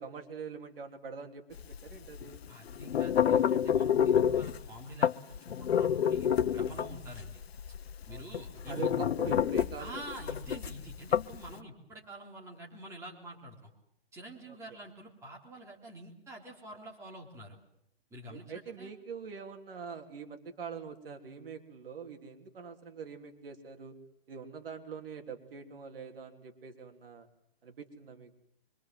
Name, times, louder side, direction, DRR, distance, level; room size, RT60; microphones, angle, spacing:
voice 1, 0.0-1.4 1.8-2.4 6.7-7.0 8.1-8.2 8.7-9.9 14.5-14.6 18.3-24.0 24.3-27.3 27.6-28.4, right 6 dB, 65° right, 5 dB, 3.4 m, -44 dB
sound 1, 1.6-11.5, left 9 dB, 80° left, 1.0 m, -29 dB
voice 2, 2.5-5.1 5.5-7.4 8.1-8.9 9.8-13.7 14.1-17.6 18.1-18.9, right 1 dB, 10° right, -2 dB, 3.7 m, -47 dB
25.5 x 24.0 x 7.8 m, 0.75 s
hypercardioid pair, 165°, 31 cm